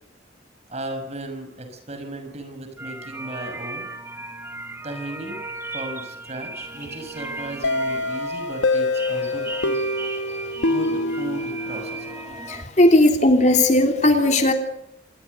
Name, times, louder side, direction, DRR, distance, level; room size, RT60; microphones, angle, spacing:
voice 1, 0.7-3.9 4.8-9.8 10.7-12.2, right 1 dB, 35° right, 6 dB, 6.2 m, -35 dB
sound 1, 2.8-12.6, right 2 dB, 15° right, 2.5 m, -36 dB
sound 2, 7.6-12.3, left 2 dB, 85° left, 0.9 m, -25 dB
voice 2, 12.5-14.5, left 1 dB, 40° left, 5 dB, 3.1 m, -17 dB
26.5 x 20.5 x 6.7 m, 0.77 s
head